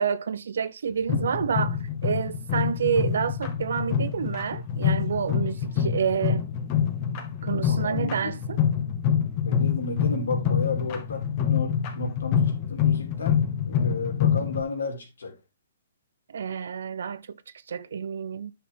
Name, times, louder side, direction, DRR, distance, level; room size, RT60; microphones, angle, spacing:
voice 1, 0.0-6.5 7.4-8.6 16.3-17.4 17.7-18.5, right 7 dB, 75° right, 0.8 m, -28 dB
sound 1, 1.1-14.6, left 8 dB, 35° left, 2.2 m, -26 dB
voice 2, 7.7-8.3 9.5-13.4 13.7-15.3, left 3 dB, 80° left, 3.5 m, -33 dB
9.6 x 5.7 x 3.9 m
hypercardioid pair, 140°, 0 cm